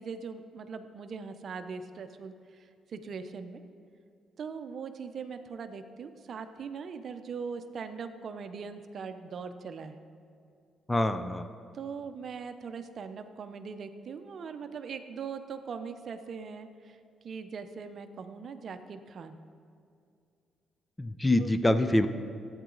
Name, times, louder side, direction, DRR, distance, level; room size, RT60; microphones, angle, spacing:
voice 1, 0.0-3.6 4.4-10.0 11.7-17.0 17.2-19.4 21.4-21.6, right 5 dB, 55° right, 9 dB, 0.6 m, -41 dB
voice 2, 10.9-11.5 21.0-22.1, left 1 dB, 15° left, 10 dB, 0.5 m, -25 dB
12.0 x 8.8 x 3.9 m, 2.4 s
cardioid pair, 90°, 0 cm